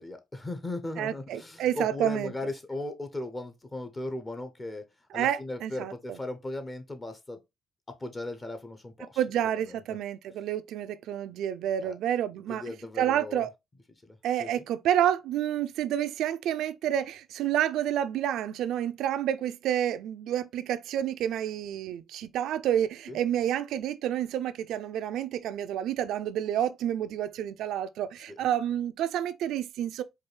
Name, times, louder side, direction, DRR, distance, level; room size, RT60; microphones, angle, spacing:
voice 1, 0.0-4.8 5.1-7.4 8.0-9.2 9.6-9.8 11.8-12.0 12.5-13.5 14.0-14.6 23.1-23.2 28.3-28.4, left 2 dB, 25° left, 0.6 m, -37 dB
voice 2, 1.0-2.3 5.1-5.9 9.2-12.6 13.0-13.5 14.2-30.0, right 10 dB, 80° right, 0.3 m, -29 dB
4.6 x 2.4 x 3.1 m
cardioid pair, 90°, 0 cm